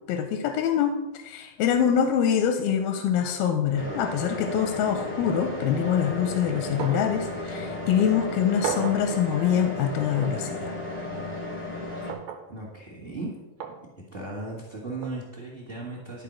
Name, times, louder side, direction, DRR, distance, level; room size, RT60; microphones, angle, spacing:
voice 1, 0.1-10.7, left 8 dB, 90° left, 6 dB, 2.5 m, -25 dB
sound 1, 3.7-12.1, left 1 dB, 50° left, 0.5 m, -34 dB
sound 2, 6.8-7.1 7.5-7.6 8.6-9.1 10.2-10.4 12.1-12.5 13.6-13.8 15.0-15.2, right 9 dB, 70° right, 2.3 m, -33 dB
voice 2, 12.5-13.4 14.1-16.2, right 2 dB, 30° right, -2 dB, 1.1 m, -36 dB
12.0 x 4.8 x 6.2 m, 1.1 s
omnidirectional pair, 4.2 m